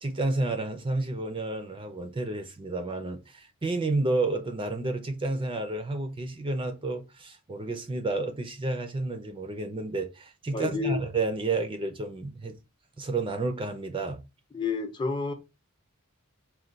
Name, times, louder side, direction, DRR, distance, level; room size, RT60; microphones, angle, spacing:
voice 1, 0.0-12.6 13.0-14.2, right 2 dB, 25° right, 0.5 m, -30 dB
voice 2, 10.5-11.0 14.5-15.3, left 4 dB, 20° left, 0.6 m, -29 dB
4.4 x 2.2 x 3.8 m
head